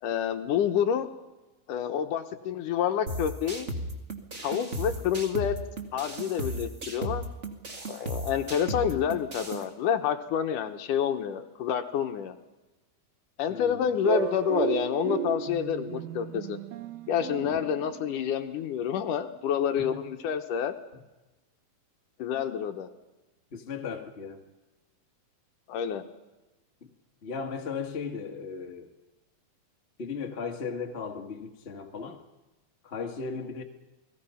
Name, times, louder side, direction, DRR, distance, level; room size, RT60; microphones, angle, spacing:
voice 1, 0.0-1.1 1.7-3.7 4.4-5.6 5.9-7.2 7.9-12.4 13.4-16.6 17.1-20.7 22.2-22.9 25.7-26.0, left 9 dB, 70° left, 7 dB, 2.4 m, -28 dB
sound 1, 3.1-9.6, right 1 dB, 25° right, 1.6 m, -36 dB
voice 2, 13.5-13.9 17.4-17.6 19.8-20.0 23.5-24.4 27.2-28.9 30.0-32.2 32.8-33.6, left 5 dB, 45° left, 3 dB, 0.8 m, -36 dB
sound 2, 14.0-18.6, right 10 dB, 80° right, 2.7 m, -34 dB
29.5 x 19.5 x 5.7 m, 1.1 s
omnidirectional pair, 4.2 m